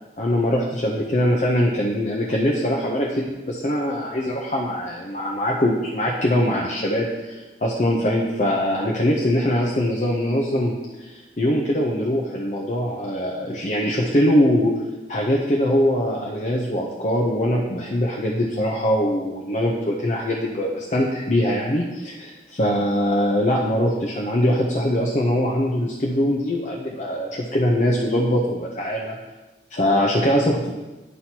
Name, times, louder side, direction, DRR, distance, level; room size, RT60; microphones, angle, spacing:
voice 1, 0.2-14.8 15.1-29.2 29.7-30.7, equal, 40° left, -1 dB, 0.6 m, -22 dB
9.4 x 5.9 x 2.8 m, 1.2 s
head